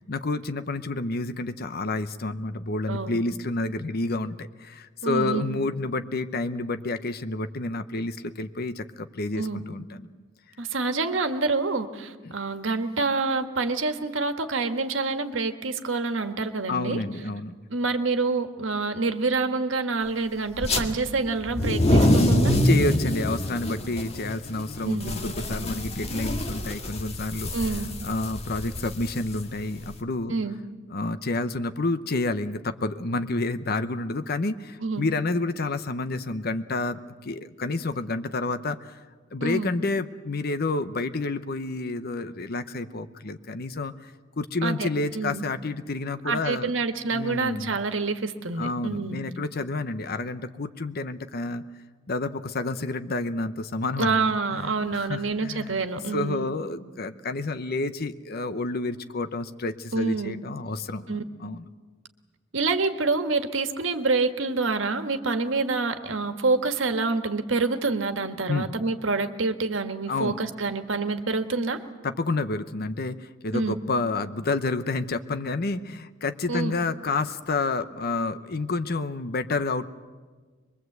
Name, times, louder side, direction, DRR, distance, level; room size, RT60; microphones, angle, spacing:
voice 1, 0.0-10.1 12.2-12.3 16.7-17.5 22.6-27.5 28.0-30.3 30.9-39.0 39.3-46.7 47.1-47.8 48.6-51.6 52.1-54.2 54.5-55.8 56.1-61.6 68.5-68.7 70.1-70.4 72.0-79.9, left 2 dB, 55° left, 10 dB, 0.9 m, -29 dB
voice 2, 2.9-3.2 5.0-5.5 9.3-9.6 10.6-17.0 17.7-22.6 24.8-25.2 27.5-27.9 30.3-30.6 34.8-35.1 39.4-39.7 44.6-44.9 45.1-45.4 46.2-49.2 54.0-56.5 59.9-60.4 61.1-61.2 62.5-71.8 73.5-73.7 76.5-76.8, right 3 dB, 80° right, 7 dB, 1.6 m, -27 dB
sound 1, 20.6-20.8 21.4-29.9, left 1 dB, 35° left, 2.0 m, -25 dB
23.5 x 22.5 x 8.0 m, 1.4 s
head